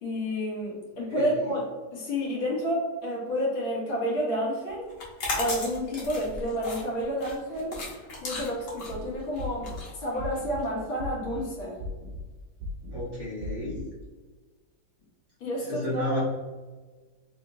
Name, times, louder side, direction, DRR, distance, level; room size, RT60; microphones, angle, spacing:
voice 1, 0.0-1.6 1.9-4.9 5.3-7.7 8.2-9.7 10.0-11.8 15.4-16.2, equal, 85° left, -4 dB, 2.0 m, -30 dB
voice 2, 1.1-1.5 12.9-13.8 15.6-16.2, left 1 dB, 15° left, -10 dB, 1.1 m, -32 dB
sound 1, 4.9-10.6, left 2 dB, 65° left, 1.6 m, -36 dB
sound 2, 8.8-9.0 9.4-9.8 10.2-10.6 11.0-11.4 11.8-12.2 12.6-13.0 13.4-13.8, left 1 dB, 75° right, 1.2 m, -37 dB
4.2 x 2.8 x 2.7 m, 1.4 s
omnidirectional pair, 2.1 m